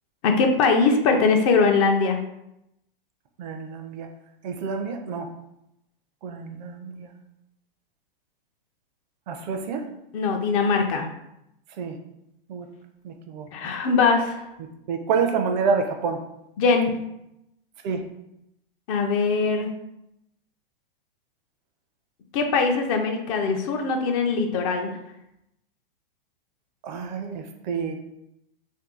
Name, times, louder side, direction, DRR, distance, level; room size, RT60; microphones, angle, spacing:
voice 1, 0.2-2.2 10.1-11.1 13.5-14.4 16.6-16.9 18.9-19.7 22.3-24.9, left 4 dB, 35° left, 4 dB, 0.4 m, -21 dB
voice 2, 3.4-4.1 4.4-5.3 6.2-7.1 9.3-9.9 11.8-12.0 12.5-12.7 13.0-13.5 14.9-16.2 17.8-18.0 26.8-28.0, right 5 dB, 50° right, 6 dB, 0.5 m, -28 dB
2.6 x 2.6 x 3.6 m, 0.84 s
hypercardioid pair, 130°, 29 cm